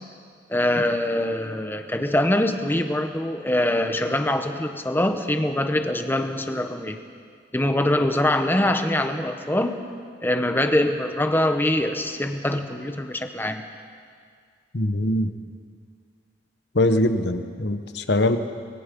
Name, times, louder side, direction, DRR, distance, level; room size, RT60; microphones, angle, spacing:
voice 1, 0.5-7.0 7.5-9.8 10.2-13.6, left 1 dB, 10° left, 7 dB, 1.1 m, -23 dB
voice 2, 14.7-15.3 16.7-18.4, left 1 dB, 65° left, 8 dB, 1.2 m, -22 dB
24.5 x 21.5 x 5.4 m, 2.1 s
head